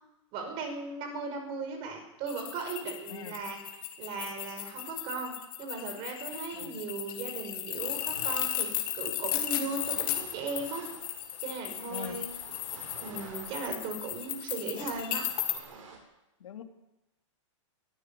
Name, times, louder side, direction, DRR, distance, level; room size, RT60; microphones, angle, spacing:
voice 1, 0.3-3.6 4.0-5.3 5.6-10.8 11.4-12.3 13.0-15.2, right 4 dB, 35° right, 5 dB, 5.9 m, -37 dB
sound 1, 2.3-15.6, left 14 dB, 40° left, 3.1 m, -35 dB
voice 2, 3.1-3.4 6.5-6.7 11.9-12.2 16.4-16.6, left 9 dB, 80° left, 4 dB, 3.3 m, -42 dB
sound 2, 7.8-16.0, right 4 dB, 80° right, 7.5 m, -50 dB
21.5 x 15.0 x 8.7 m, 0.93 s
hypercardioid pair, 155°, 16 cm